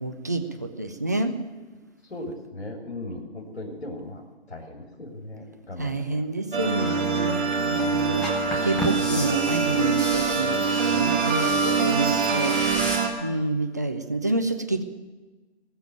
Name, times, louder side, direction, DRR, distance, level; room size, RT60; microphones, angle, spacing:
voice 1, 0.0-1.3 5.8-8.2 8.6-12.5 13.2-14.8, right 2 dB, 15° right, 6 dB, 0.5 m, -28 dB
voice 2, 2.1-4.2 4.5-6.2, left 1 dB, 75° left, -1 dB, 3.4 m, -37 dB
sound 1, 6.5-13.1, right 5 dB, 50° right, 2.6 m, -24 dB
sound 2, 8.1-13.0, equal, 5° left, 0.8 m, -33 dB
20.0 x 7.0 x 9.1 m, 1.2 s
figure-of-eight pair, 150°, 33 cm